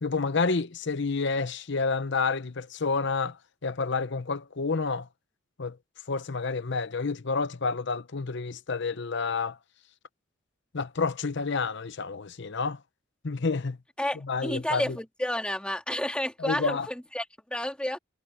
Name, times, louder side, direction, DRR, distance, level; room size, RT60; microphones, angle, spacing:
voice 1, 0.0-5.1 5.6-5.8 6.1-9.6 10.7-12.8 13.2-13.8 14.2-15.0 16.4-16.9, left 4 dB, 60° left, 0.8 m, -29 dB
voice 2, 14.0-18.0, left 1 dB, 5° left, 2.1 m, -31 dB
head